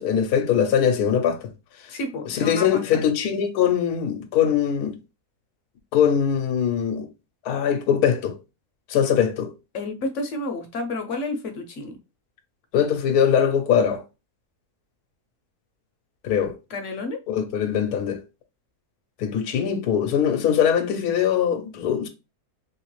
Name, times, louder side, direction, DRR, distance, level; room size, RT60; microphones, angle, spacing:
voice 1, 0.0-1.5 2.3-5.0 5.9-7.1 7.4-8.4 8.9-9.5 12.7-14.0 16.2-16.6 17.3-18.2 19.2-22.1, left 8 dB, 85° left, 1.1 m, -22 dB
voice 2, 1.9-2.8 9.7-12.0 16.7-17.2, left 2 dB, 60° left, 0.9 m, -30 dB
3.2 x 3.0 x 3.0 m
omnidirectional pair, 1.6 m